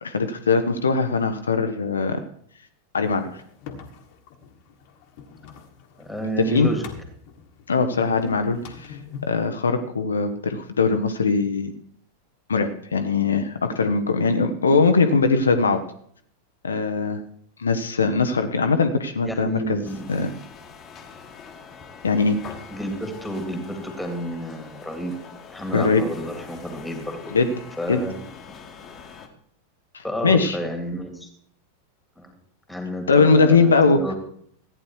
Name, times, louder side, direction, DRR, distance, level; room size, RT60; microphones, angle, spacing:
voice 1, 0.0-2.2 2.9-3.4 6.4-6.7 7.7-11.7 12.5-15.8 16.6-17.2 17.6-19.8 20.1-20.3 22.0-22.4 25.7-26.0 27.3-27.5 27.9-28.0 29.9-30.6 33.1-34.0, left 4 dB, 70° left, 7 dB, 1.0 m, -21 dB
sound 1, 3.0-9.5, left 6 dB, 45° left, 1.6 m, -44 dB
voice 2, 6.0-6.9 19.2-20.1 22.7-25.1 25.5-27.3 27.8-28.2 30.0-31.3 32.2-32.3 32.7-34.1, equal, 5° left, 5 dB, 2.8 m, -30 dB
sound 2, 19.8-29.3, left 5 dB, 25° left, 1.6 m, -43 dB
14.5 x 9.8 x 4.7 m, 0.62 s
figure-of-eight pair, 90°, 0 cm